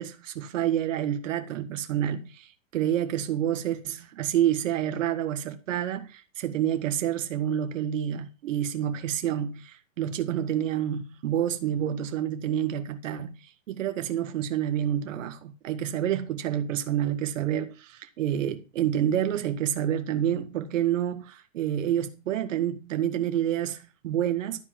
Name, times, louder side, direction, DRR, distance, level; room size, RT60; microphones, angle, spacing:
voice 1, 0.0-24.6, right 10 dB, 70° right, 1.8 m, -28 dB
13.0 x 5.0 x 7.4 m
hypercardioid pair, 135°, 39 cm